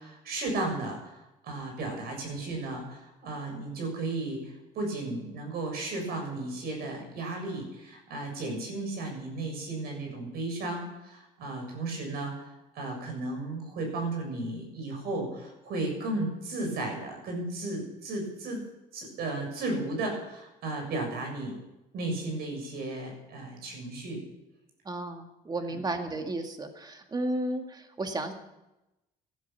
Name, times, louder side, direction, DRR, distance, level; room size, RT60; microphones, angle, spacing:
voice 1, 0.0-18.6 18.9-21.6 21.9-24.2 25.7-25.8, right 2 dB, 70° right, 2 dB, 6.9 m, -34 dB
voice 2, 24.9-28.3, right 2 dB, 25° right, 5 dB, 2.1 m, -33 dB
15.5 x 12.0 x 7.1 m, 0.95 s
cardioid pair, 110°, 17 cm